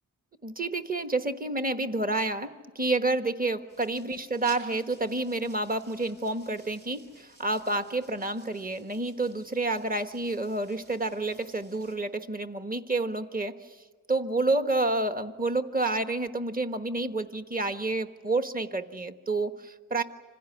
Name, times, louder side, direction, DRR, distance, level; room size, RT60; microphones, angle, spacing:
voice 1, 0.4-13.8 14.1-20.0, right 2 dB, 25° right, 8 dB, 1.3 m, -29 dB
sound 1, 3.7-11.9, right 1 dB, 85° right, 7.6 m, -56 dB
26.5 x 16.0 x 9.8 m, 1.4 s
wide cardioid pair, 70°, 33 cm